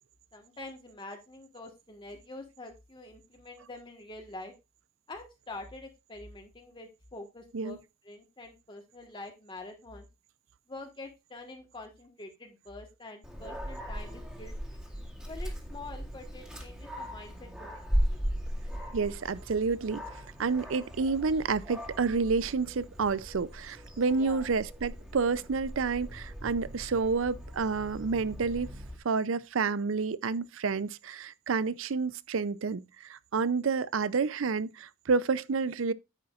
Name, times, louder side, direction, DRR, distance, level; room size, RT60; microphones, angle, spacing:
voice 1, 0.3-4.5 5.1-7.8 8.0-10.1 10.7-14.8 15.3-18.3 24.1-24.5, left 2 dB, 25° left, 1.4 m, -46 dB
Dog, 13.2-29.0, equal, 5° right, 2.2 m, -38 dB
voice 2, 18.9-20.0 20.4-28.7 29.0-35.9, right 4 dB, 80° right, 0.5 m, -29 dB
9.9 x 8.6 x 2.4 m
head